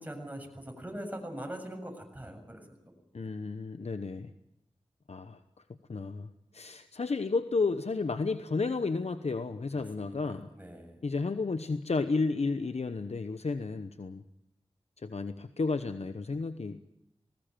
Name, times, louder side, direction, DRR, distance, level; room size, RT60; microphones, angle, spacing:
voice 1, 0.0-3.0 3.2-3.3 9.7-11.0, right 1 dB, 15° right, 3 dB, 6.9 m, -43 dB
voice 2, 3.1-4.3 5.1-5.4 5.9-10.5 11.0-14.2 15.0-16.8, left 4 dB, 75° left, 10 dB, 1.0 m, -32 dB
20.5 x 18.5 x 9.1 m, 0.83 s
wide cardioid pair, 55°, 11 cm